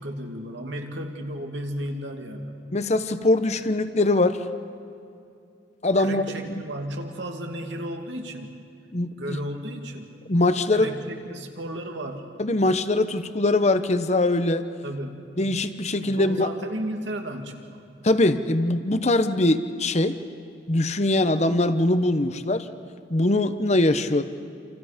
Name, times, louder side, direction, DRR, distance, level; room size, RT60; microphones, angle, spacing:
voice 1, 0.0-2.6 6.0-8.6 9.2-10.2 10.7-12.3 14.8-15.2 16.0-17.9, right 1 dB, 75° right, 3 dB, 2.5 m, -34 dB
voice 2, 2.7-4.4 5.8-6.2 8.9-9.4 10.3-10.9 12.4-14.7 15.4-16.5 18.0-20.2 20.7-22.7 23.1-24.2, left 2 dB, 35° left, 10 dB, 1.0 m, -22 dB
28.0 x 28.0 x 5.2 m, 2.5 s
head